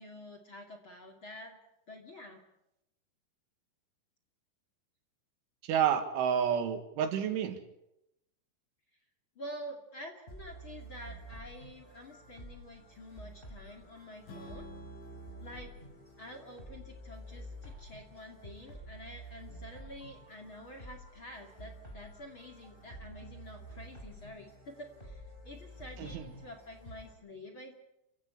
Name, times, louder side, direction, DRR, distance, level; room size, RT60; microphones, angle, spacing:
voice 1, 0.0-1.6 1.9-2.4 9.4-14.7 15.4-15.7 16.2-27.8, left 1 dB, 35° left, 4 dB, 2.5 m, -48 dB
voice 2, 5.6-7.6 26.0-26.3, right 8 dB, 80° right, 8 dB, 4.3 m, -29 dB
sound 1, 10.3-27.1, right 1 dB, 10° left, 5.5 m, -50 dB
Strum, 14.3-18.5, left 2 dB, 80° left, 7.4 m, -53 dB
29.5 x 16.5 x 8.6 m, 0.85 s
omnidirectional pair, 5.4 m